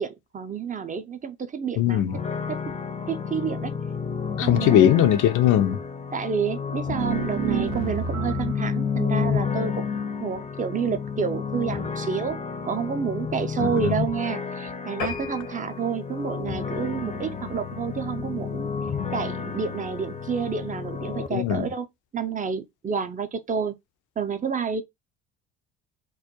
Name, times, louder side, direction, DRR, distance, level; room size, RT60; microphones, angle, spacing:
voice 1, 0.0-2.0 2.5-2.6 3.1-3.7 4.4-5.1 6.1-12.4 12.6-18.7 19.1-21.9 22.1-23.7 24.2-24.8, right 6 dB, 25° right, 0.5 m, -29 dB
voice 2, 1.8-2.1 4.4-5.8 13.6-13.9 21.3-21.7, left 11 dB, 65° left, 0.6 m, -20 dB
sound 1, 2.1-21.3, left 6 dB, 20° left, 0.6 m, -31 dB
sound 2, 6.9-8.7, right 8 dB, 80° right, 0.5 m, -28 dB
sound 3, 15.0-17.7 18.2-18.4 18.9-19.0 19.3-19.4 19.6-19.7, left 6 dB, 80° left, 1.0 m, -38 dB
2.3 x 2.1 x 2.7 m
hypercardioid pair, 60°, 33 cm